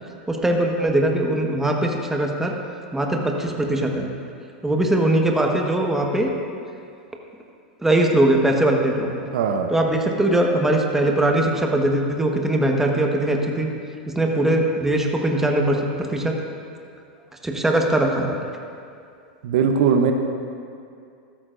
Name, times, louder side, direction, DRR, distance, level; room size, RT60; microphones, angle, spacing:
voice 1, 0.3-2.5 2.9-4.1 4.6-6.3 7.8-9.3 9.7-13.7 14.1-16.3 17.4-18.4, right 1 dB, 10° right, 1 dB, 1.4 m, -21 dB
voice 2, 9.3-9.7 19.4-20.1, right 6 dB, 70° right, 5 dB, 0.8 m, -19 dB
14.0 x 13.0 x 2.6 m, 2.4 s
hypercardioid pair, 100°, 5 cm